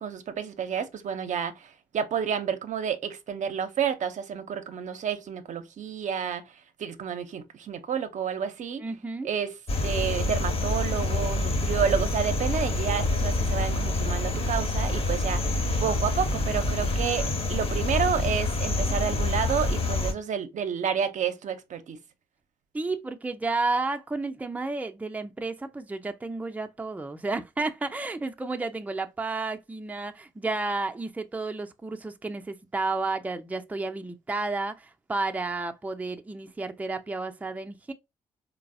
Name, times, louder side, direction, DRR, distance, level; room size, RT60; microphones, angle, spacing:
voice 1, 0.0-8.8 9.2-9.5 9.8-22.0, right 7 dB, 60° right, 0.5 m, -30 dB
voice 2, 8.8-9.3 22.7-37.9, right 3 dB, 10° right, 0.4 m, -31 dB
sound 1, 9.7-20.1, left 2 dB, 45° left, 0.9 m, -27 dB
3.8 x 2.0 x 2.5 m
hypercardioid pair, 45°, 14 cm